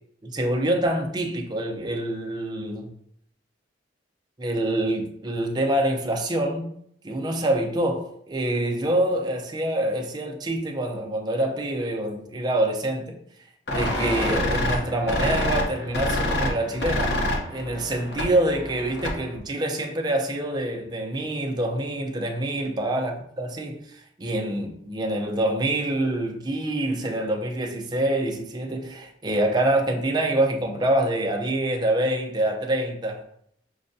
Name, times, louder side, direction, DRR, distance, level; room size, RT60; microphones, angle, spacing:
voice 1, 0.2-2.9 4.4-6.7 7.0-13.1 13.7-17.2 17.5-33.2, right 1 dB, 25° right, 0.5 m, -26 dB
sound 1, 13.7-19.4, left 1 dB, 65° left, 0.7 m, -27 dB
6.1 x 2.2 x 2.6 m
head